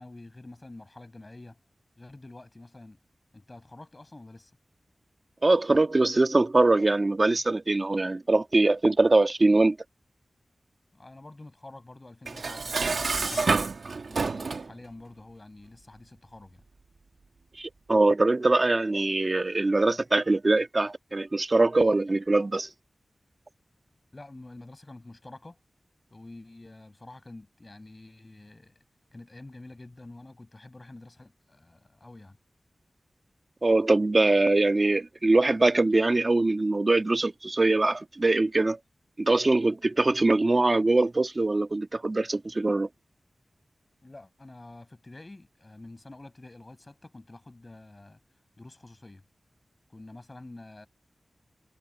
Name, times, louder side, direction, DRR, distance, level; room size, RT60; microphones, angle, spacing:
voice 1, 0.0-1.6 2.0-3.0 3.3-4.5 10.9-13.7 14.1-16.6 24.1-25.6 26.1-28.8 29.1-32.4 44.0-48.2 48.6-49.2 49.9-50.9, left 2 dB, 35° left, 6.7 m, -47 dB
voice 2, 5.4-9.8 17.6-22.7 33.6-38.8 39.2-42.9, right 2 dB, 40° right, 1.6 m, -23 dB
Dishes pots and pans, 12.3-14.7, right 4 dB, 80° right, 1.9 m, -28 dB
sound 1, 12.5-13.5, left 4 dB, 75° left, 4.1 m, -42 dB
wide cardioid pair, 65°, 0 cm